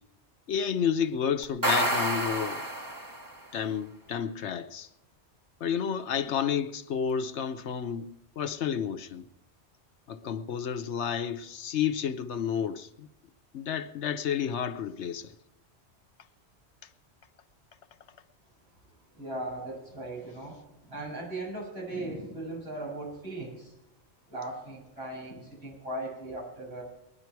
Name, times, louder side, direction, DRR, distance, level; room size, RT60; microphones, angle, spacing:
voice 1, 0.5-2.6 3.5-4.9 5.6-8.1 8.4-9.2 10.1-13.1 13.5-15.3, left 7 dB, 85° left, 1.1 m, -30 dB
sound 1, 1.4-3.4, right 1 dB, 20° right, 1.6 m, -29 dB
voice 2, 19.1-23.7 24.3-26.8, right 2 dB, 65° right, 7.6 m, -38 dB
20.5 x 11.0 x 4.6 m
omnidirectional pair, 1.1 m